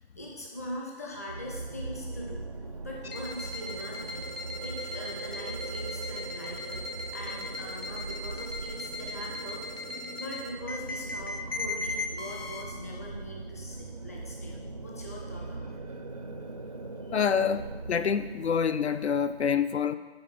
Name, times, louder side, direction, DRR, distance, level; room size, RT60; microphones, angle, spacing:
voice 1, 0.2-2.4 2.8-4.3 4.6-6.8 7.1-9.8 10.2-15.8 17.0-17.1, left 1 dB, 15° left, -2 dB, 0.5 m, -42 dB
sound 1, 1.3-18.7, right 2 dB, 35° right, 0.4 m, -40 dB
sound 2, 3.0-12.6, left 2 dB, 65° left, 1.0 m, -38 dB
voice 2, 17.1-19.9, left 7 dB, 80° left, 13 dB, 0.5 m, -27 dB
9.1 x 4.0 x 5.3 m, 1.4 s
figure-of-eight pair, 155°, 32 cm